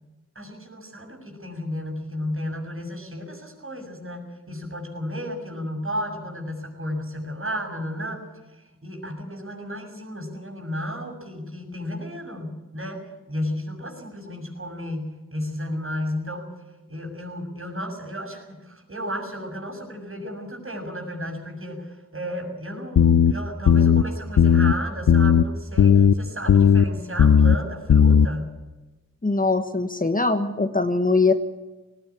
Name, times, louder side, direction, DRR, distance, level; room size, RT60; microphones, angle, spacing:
voice 1, 0.3-8.2 8.8-13.0 13.3-16.5 16.9-28.6, equal, 40° right, 4 dB, 6.9 m, -33 dB
sound 1, 23.0-23.3 23.7-24.0 24.4-24.7 25.1-25.4 25.8-26.1 26.5-26.8 27.2-27.6 27.9-28.3, left 7 dB, 65° left, 0.8 m, -15 dB
voice 2, 29.2-31.3, left 3 dB, 25° left, 8 dB, 1.5 m, -22 dB
19.0 x 16.5 x 9.9 m, 1.1 s
cardioid pair, 55°, 33 cm